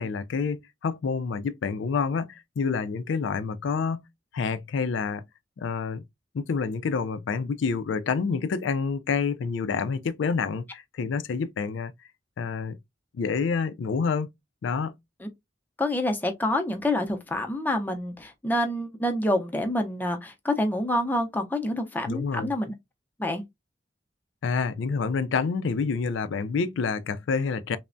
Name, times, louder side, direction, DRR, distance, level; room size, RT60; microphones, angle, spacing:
voice 1, 0.0-4.1 4.3-5.2 5.6-6.0 6.3-11.9 12.4-12.8 13.1-14.3 14.6-15.0 22.1-22.5 24.4-27.8, left 5 dB, 80° left, 0.4 m, -28 dB
voice 2, 15.8-22.7 23.2-23.4, left 1 dB, 10° left, 0.5 m, -27 dB
3.3 x 2.0 x 2.5 m
head